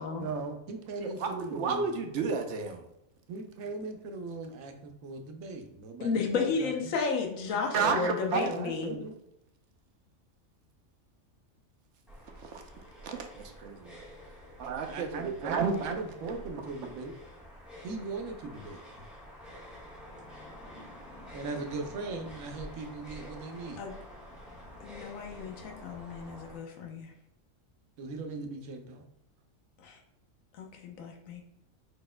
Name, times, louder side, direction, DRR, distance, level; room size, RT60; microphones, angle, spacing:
voice 1, 0.1-1.9 3.3-6.9 7.8-9.1 14.8-17.1 17.8-19.0 21.3-23.8 28.0-29.0, right 4 dB, 90° right, 5 dB, 1.1 m, -38 dB
voice 2, 1.0-2.8 7.5-8.5 12.4-14.0 14.6-16.0 16.3-16.4, right 5 dB, 65° right, 5 dB, 0.9 m, -32 dB
voice 3, 6.0-9.0 23.8-23.9 24.8-27.1 29.8-30.0 30.5-31.4, left 5 dB, 80° left, 2 dB, 1.2 m, -33 dB
sound 1, 12.1-26.6, equal, ahead, 1.3 m, -48 dB
5.1 x 4.1 x 2.2 m, 0.86 s
omnidirectional pair, 1.4 m